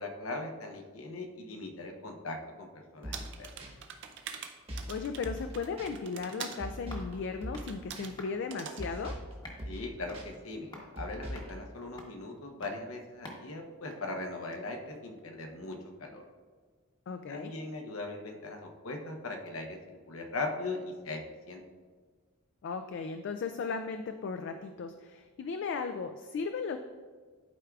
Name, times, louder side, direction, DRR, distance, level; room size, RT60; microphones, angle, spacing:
voice 1, 0.0-3.5 9.7-16.2 17.3-19.8 20.1-21.6, left 2 dB, 80° left, 3 dB, 0.9 m, -39 dB
sound 1, 3.0-3.3 3.6-3.7 4.7-5.0 5.2-5.5 5.8-5.9 6.6-7.1 7.4-7.7 8.0-8.1 8.8-9.3 9.6-9.9 10.1-10.3 11.0-11.5, equal, 25° right, 1.2 m, -40 dB
sound 2, 3.1-6.6 7.6-8.1 8.5-8.8, right 7 dB, 60° right, 0.5 m, -44 dB
voice 2, 4.9-9.1 17.1-17.5 22.6-26.8, left 5 dB, 60° left, 7 dB, 0.3 m, -36 dB
sound 3, 5.6-14.8 15.2-15.3, left 1 dB, 20° left, 0.9 m, -53 dB
11.5 x 4.6 x 2.3 m, 1.5 s
head